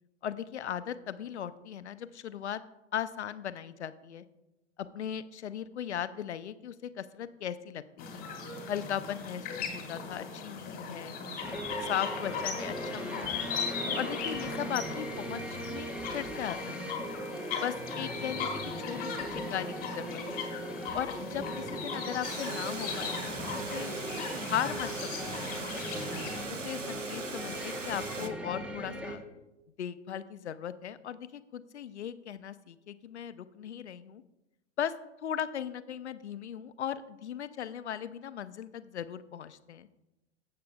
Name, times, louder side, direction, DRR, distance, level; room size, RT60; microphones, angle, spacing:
voice 1, 0.2-2.6 2.9-4.2 4.8-8.2 8.7-11.2 11.8-13.5 14.0-15.4 15.7-16.6 16.9-17.1 17.6-20.5 20.9-24.0 24.4-25.5 26.5-29.2 29.8-34.2 34.8-34.9 35.2-39.9, left 9 dB, 65° left, 14 dB, 0.6 m, -37 dB
sound 1, 8.0-26.5, left 5 dB, 25° left, 1.7 m, -38 dB
sound 2, 11.4-29.2, right 1 dB, 5° right, 0.8 m, -39 dB
Water, 22.2-28.3, right 4 dB, 90° right, 0.7 m, -40 dB
16.0 x 7.6 x 2.3 m, 0.99 s
figure-of-eight pair, 100°, 36 cm